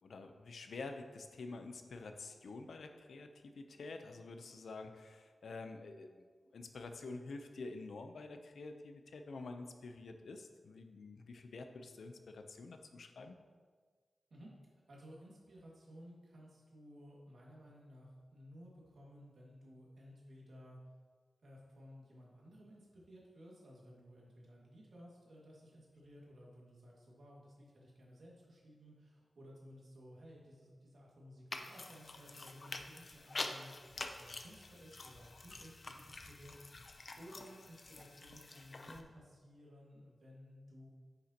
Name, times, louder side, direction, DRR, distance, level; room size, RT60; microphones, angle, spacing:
voice 1, 0.0-6.2 6.5-13.4, left 3 dB, 85° left, 6 dB, 0.6 m, -48 dB
voice 2, 14.9-20.8 21.4-40.9, equal, 65° right, -4 dB, 2.0 m, -57 dB
sound 1, 31.5-39.0, left 3 dB, 40° left, 0.5 m, -47 dB
9.5 x 6.6 x 2.9 m, 1.5 s
wide cardioid pair, 155°, 0 cm